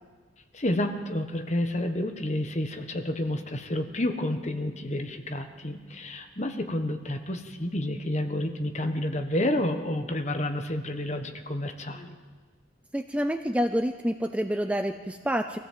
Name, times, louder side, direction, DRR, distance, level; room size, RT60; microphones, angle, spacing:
voice 1, 0.5-12.2, left 1 dB, 35° left, 6 dB, 1.3 m, -30 dB
voice 2, 12.9-15.6, equal, 5° right, 7 dB, 0.5 m, -28 dB
23.5 x 15.5 x 7.6 m, 1.5 s
head